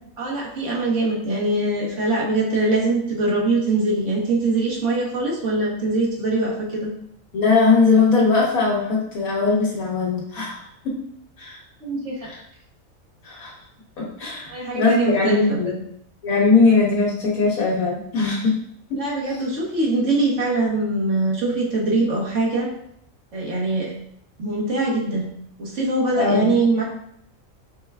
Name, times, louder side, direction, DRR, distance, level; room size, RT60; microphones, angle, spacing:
voice 1, 0.2-6.9 11.8-12.3 14.5-15.8 19.0-22.7 23.3-23.9 24.4-25.2 25.6-26.8, right 2 dB, 60° right, -4 dB, 1.5 m, -22 dB
voice 2, 7.3-10.9 11.4-11.6 12.3-12.4 13.2-13.5 14.0-15.7 16.2-18.5 18.9-19.0 26.1-26.5, left 4 dB, 90° left, -4 dB, 1.8 m, -20 dB
6.5 x 2.3 x 3.5 m, 0.71 s
omnidirectional pair, 1.4 m